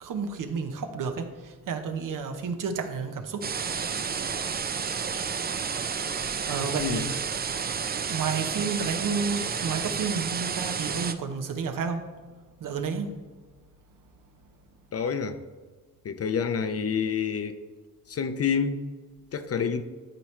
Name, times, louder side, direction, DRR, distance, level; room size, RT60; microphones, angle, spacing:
voice 1, 0.0-3.5 3.8-3.9 6.3-7.1 8.1-12.1 12.6-13.2, right 5 dB, 65° right, 7 dB, 0.9 m, -31 dB
sound 1, 3.4-11.1, right 6 dB, 30° right, 0.4 m, -31 dB
voice 2, 14.9-15.4 16.0-17.6 18.1-18.9 19.3-19.8, left 6 dB, 45° left, 9 dB, 0.6 m, -28 dB
12.0 x 4.5 x 3.2 m, 1.3 s
cardioid pair, 90°, 34 cm